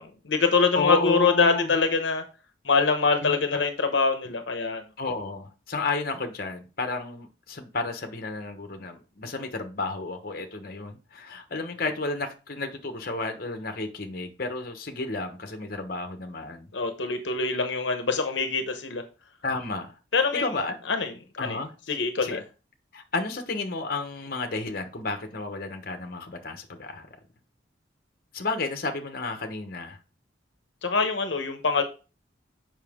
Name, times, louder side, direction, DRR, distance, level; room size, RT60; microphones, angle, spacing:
voice 1, 0.0-2.2 2.6-4.8 16.7-19.0 20.1-20.5 20.9-21.6 21.9-22.4 30.8-31.8, left 4 dB, 75° left, 0.9 m, -24 dB
voice 2, 0.7-1.7 3.2-3.6 5.0-16.7 19.4-20.0 20.3-20.8 21.4-21.7 22.2-22.4 22.9-27.1 28.3-30.0, left 3 dB, 50° left, 1.0 m, -32 dB
7.3 x 5.4 x 3.6 m
head